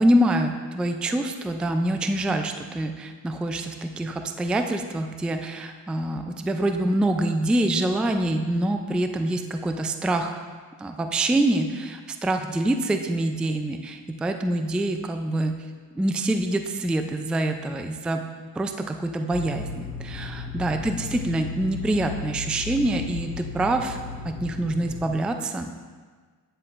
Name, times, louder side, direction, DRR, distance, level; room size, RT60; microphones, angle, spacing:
voice 1, 0.0-10.4 10.8-15.6 15.9-18.2 18.6-25.7, right 1 dB, 5° right, 6 dB, 0.3 m, -25 dB
sound 1, 19.3-25.1, left 4 dB, 75° left, 1.5 m, -35 dB
8.9 x 7.5 x 2.5 m, 1.5 s
cardioid pair, 80°, 43 cm